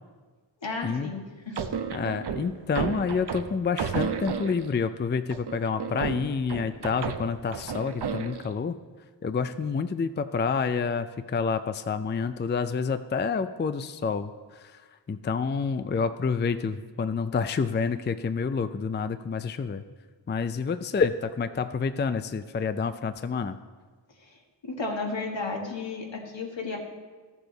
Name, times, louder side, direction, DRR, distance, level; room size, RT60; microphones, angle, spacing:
voice 1, 0.6-1.6 24.2-24.4 24.6-26.8, left 3 dB, 75° left, 1 dB, 1.6 m, -33 dB
sound 1, 1.6-4.8 5.3-8.6, right 6 dB, 60° right, 0.7 m, -33 dB
voice 2, 1.9-8.8 9.2-14.8 15.1-19.8 20.3-23.6, left 5 dB, 25° left, 11 dB, 0.4 m, -28 dB
13.0 x 7.1 x 3.9 m, 1.4 s
wide cardioid pair, 55°, 45 cm